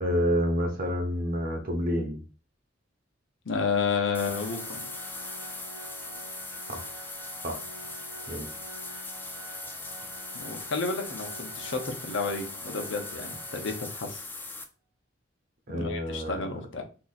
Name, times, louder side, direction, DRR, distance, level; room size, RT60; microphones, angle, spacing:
voice 1, 0.0-2.2 6.7-6.9 7.4-7.6 8.3-8.5 15.7-16.4, equal, 50° right, 3 dB, 0.9 m, -28 dB
voice 2, 3.4-4.9 10.3-14.2 15.7-16.8, left 4 dB, 75° left, 4 dB, 0.7 m, -31 dB
Organ, 3.7-14.6, right 4 dB, 80° right, 0.8 m, -47 dB
sound 1, 4.1-14.6, left 3 dB, 10° left, 0.4 m, -40 dB
2.9 x 2.5 x 3.9 m, 0.37 s
head